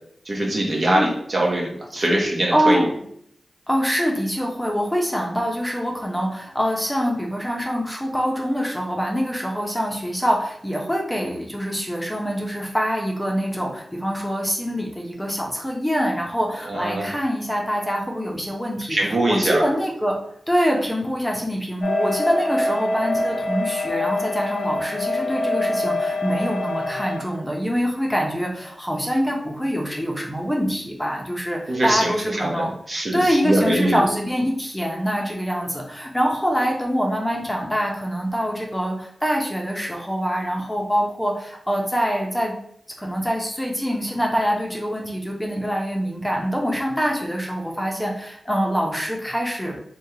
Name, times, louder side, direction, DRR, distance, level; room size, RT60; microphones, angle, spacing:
voice 1, 0.3-2.9 16.7-17.1 18.9-19.6 31.7-34.0, right 1 dB, 55° right, -2 dB, 0.9 m, -22 dB
voice 2, 2.5-3.0 3.7-20.2 20.5-32.7 33.1-42.5 43.0-49.8, equal, 10° left, -1 dB, 0.7 m, -24 dB
sound 1, 21.8-27.2, left 2 dB, 75° left, 0.4 m, -25 dB
3.4 x 2.2 x 2.8 m, 0.67 s
cardioid pair, 45°, 0 cm